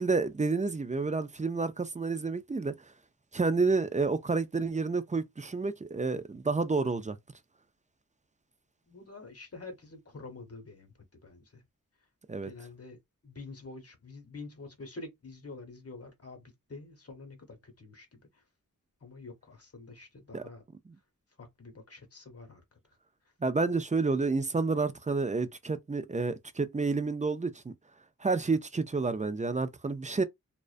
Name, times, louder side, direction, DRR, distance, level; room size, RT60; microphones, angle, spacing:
voice 1, 0.0-2.7 3.3-7.2 12.3-12.5 20.3-20.4 23.4-27.7 28.2-30.2, right 4 dB, 20° right, 0.3 m, -29 dB
voice 2, 8.9-10.9 11.2-11.6 12.4-13.0 13.2-18.2 19.0-20.6 21.4-22.6, left 3 dB, 45° left, 1.0 m, -47 dB
2.4 x 2.1 x 2.4 m
wide cardioid pair, 40°, 35 cm